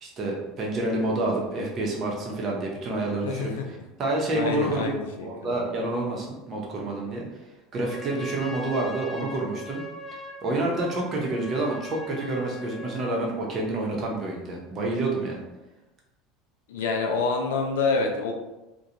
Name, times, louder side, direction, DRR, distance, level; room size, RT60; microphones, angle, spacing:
voice 1, 0.0-3.5 4.0-4.9 5.2-7.2 7.7-9.8 10.4-15.4, right 2 dB, 45° right, -1 dB, 0.8 m, -28 dB
voice 2, 3.3-3.7 4.3-5.6 16.7-18.3, left 4 dB, 80° left, 2 dB, 0.4 m, -27 dB
Trumpet, 7.7-13.2, equal, 5° left, 0.6 m, -41 dB
2.4 x 2.2 x 2.8 m, 1.0 s
hypercardioid pair, 85°, 0 cm